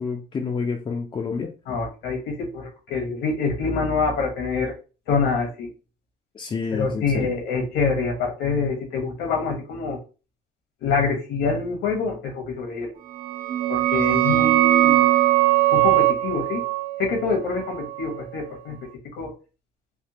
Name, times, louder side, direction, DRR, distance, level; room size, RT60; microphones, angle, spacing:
voice 1, 0.0-1.5 6.3-7.3, left 5 dB, 30° left, 0.4 m, -28 dB
voice 2, 1.7-4.8 5.1-5.7 6.7-10.0 10.8-13.0 13.7-15.1 15.7-16.6 17.0-18.8 19.2-19.3, left 4 dB, 85° left, 1.2 m, -26 dB
sound 1, 13.1-18.6, right 15 dB, 60° right, 0.5 m, -21 dB
3.4 x 2.1 x 2.8 m
cardioid pair, 110°, 17 cm